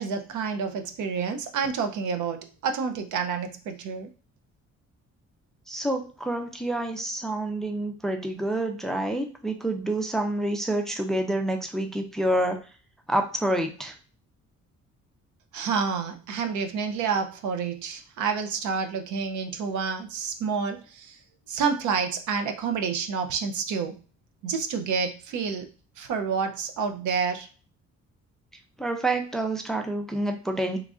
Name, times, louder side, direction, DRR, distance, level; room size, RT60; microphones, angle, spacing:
voice 1, 0.0-4.1 15.5-20.8 21.5-23.9 24.4-25.6 26.0-27.5, right 5 dB, 80° right, 6 dB, 0.6 m, -28 dB
voice 2, 5.7-12.6 13.1-13.9 28.8-30.8, right 1 dB, ahead, 4 dB, 0.4 m, -28 dB
3.1 x 2.4 x 3.6 m, 0.37 s
cardioid pair, 145°, 29 cm